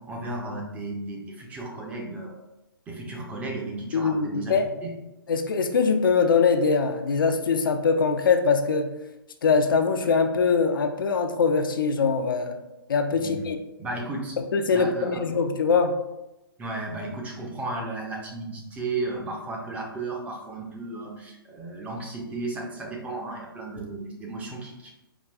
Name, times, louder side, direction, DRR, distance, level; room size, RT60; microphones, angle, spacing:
voice 1, 0.1-2.4 2.9-4.6 4.8-4.9 13.1-13.5 13.8-14.4 14.7-15.4 16.6-24.9, right 2 dB, 10° right, -1 dB, 0.5 m, -34 dB
voice 2, 3.9-4.7 5.3-8.9 9.4-12.6 12.9-13.6 14.5-16.0, left 5 dB, 60° left, 6 dB, 0.4 m, -22 dB
4.8 x 2.3 x 2.2 m, 0.95 s
figure-of-eight pair, 120°, 12 cm